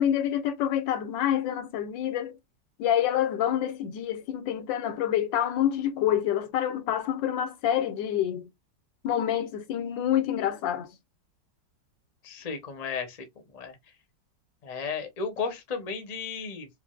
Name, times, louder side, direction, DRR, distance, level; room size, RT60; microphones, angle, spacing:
voice 1, 0.0-2.4 2.8-8.5 9.0-10.9, left 10 dB, 85° left, 1.4 m, -27 dB
voice 2, 12.2-13.2 13.5-13.8 14.6-16.7, left 5 dB, 40° left, 0.5 m, -34 dB
4.7 x 2.0 x 2.3 m
omnidirectional pair, 2.0 m